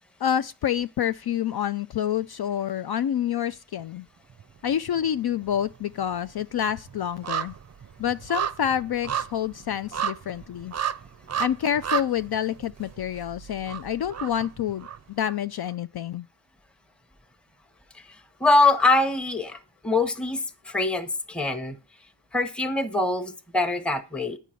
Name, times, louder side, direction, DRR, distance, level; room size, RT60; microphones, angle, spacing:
voice 1, 0.2-4.1 4.6-7.5 8.0-10.7 11.4-16.3, left 9 dB, 55° left, 0.5 m, -28 dB
sound 1, 4.3-5.1 5.4-15.3 15.7-15.8, right 9 dB, 35° right, 0.5 m, -33 dB
voice 2, 17.9-19.6 19.8-21.8 22.3-24.4, left 2 dB, ahead, 0.9 m, -24 dB
9.2 x 5.5 x 7.6 m
wide cardioid pair, 110°, 46 cm